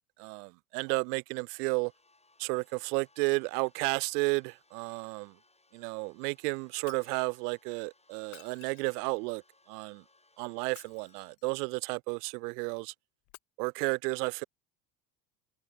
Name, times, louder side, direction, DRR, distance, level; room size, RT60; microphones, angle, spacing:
voice 1, 0.2-1.9 2.4-5.3 5.7-9.4 9.7-10.0 10.4-12.9 13.6-14.4, right 30 dB, 65° right, 0.8 m, -32 dB
sound 1, 1.9-11.4, left 3 dB, 10° left, 7.0 m, -67 dB
Shatter, 6.9-7.3 8.2-9.3 10.6-11.5 13.2-13.4, left 38 dB, 65° left, 4.9 m, -55 dB
hypercardioid pair, 80°, 49 cm